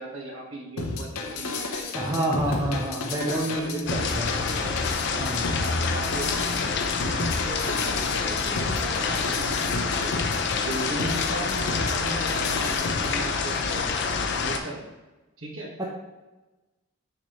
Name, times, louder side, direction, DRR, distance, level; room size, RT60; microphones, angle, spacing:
voice 1, 0.0-2.7 3.2-4.8 5.6-6.4 7.2-10.2 10.5-13.9 14.4-14.8 15.4-15.7, right 1 dB, 65° right, -1 dB, 1.4 m, -37 dB
sound 1, 0.8-13.1, left 3 dB, 90° left, 0.8 m, -32 dB
voice 2, 1.9-4.3 5.2-5.6 15.8-15.9, right 1 dB, 20° right, -2 dB, 0.7 m, -28 dB
sound 2, 3.9-14.6, left 4 dB, 55° left, 0.5 m, -27 dB
6.5 x 4.9 x 3.0 m, 1.1 s
head